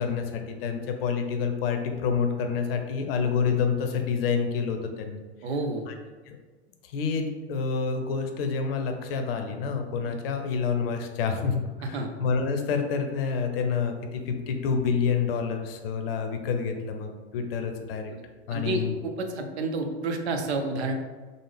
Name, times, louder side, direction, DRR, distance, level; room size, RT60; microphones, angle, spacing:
voice 1, 0.0-5.2 5.9-6.0 6.3-6.4 6.8-18.1 18.5-18.9, left 5 dB, 60° left, 5 dB, 0.6 m, -28 dB
voice 2, 5.4-5.9 11.8-12.1 18.1-18.2 18.5-20.9, right 2 dB, 75° right, 5 dB, 0.6 m, -30 dB
3.4 x 2.0 x 3.3 m, 1.3 s
hypercardioid pair, 95°, 33 cm